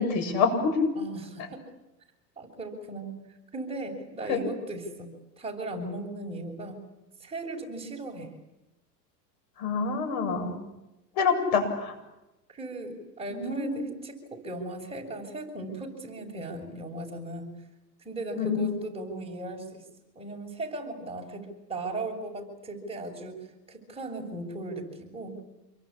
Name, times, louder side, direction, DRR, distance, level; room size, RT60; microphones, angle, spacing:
voice 1, 0.0-0.9 4.3-4.4 9.6-10.6 11.1-11.9 13.3-13.8 18.3-18.7, left 5 dB, 60° left, 7 dB, 7.9 m, -26 dB
voice 2, 0.9-1.6 2.4-3.2 3.5-6.8 7.2-8.3 12.5-17.6 18.0-19.8 20.1-23.4 23.7-25.4, right 2 dB, 10° right, 0 dB, 6.8 m, -37 dB
28.0 x 24.0 x 8.8 m, 0.97 s
hypercardioid pair, 115°, 50 cm